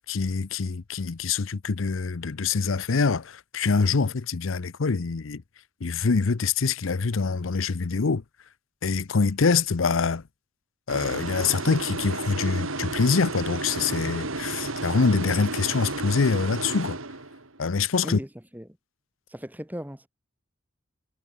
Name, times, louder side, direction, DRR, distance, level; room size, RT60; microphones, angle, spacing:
voice 1, 0.1-5.4 5.8-8.2 8.8-10.2 10.9-17.0 17.6-18.2, left 4 dB, 70° left, 0.7 m, -25 dB
sound 1, 10.9-17.6, right 2 dB, 80° right, 3.7 m, -32 dB
voice 2, 18.0-18.7 19.3-20.1, equal, 10° right, 3.4 m, -37 dB
head